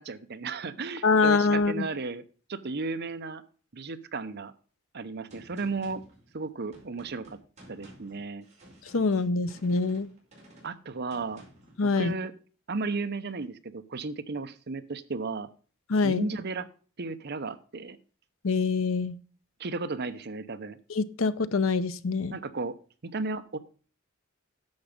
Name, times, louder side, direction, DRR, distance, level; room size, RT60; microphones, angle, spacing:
voice 1, 0.0-2.2 2.5-3.4 3.7-4.5 4.9-6.0 6.3-7.4 7.7-8.4 10.6-11.4 11.8-12.3 12.7-15.5 16.0-16.7 17.0-18.0 19.6-20.8 22.3-22.7 23.0-23.6, right 3 dB, 55° right, 11 dB, 0.9 m, -34 dB
voice 2, 1.0-1.9 8.9-10.1 11.8-12.1 15.9-16.2 18.4-19.1 20.9-22.3, left 4 dB, 75° left, 15 dB, 0.7 m, -25 dB
Gunshot gunfire, 5.3-11.8, right 1 dB, 35° right, 5.2 m, -54 dB
10.5 x 7.1 x 5.2 m, 0.40 s
head